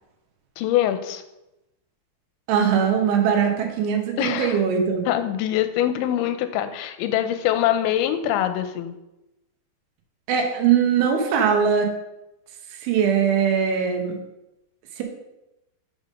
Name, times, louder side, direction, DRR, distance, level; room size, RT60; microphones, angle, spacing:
voice 1, 0.6-1.2 4.2-4.6 5.1-8.9, left 12 dB, 80° left, 9 dB, 2.9 m, -23 dB
voice 2, 2.5-5.0 10.3-11.9 12.8-14.2 15.0-15.1, right 7 dB, 85° right, 2 dB, 3.6 m, -21 dB
7.9 x 5.3 x 5.3 m, 0.92 s
omnidirectional pair, 5.4 m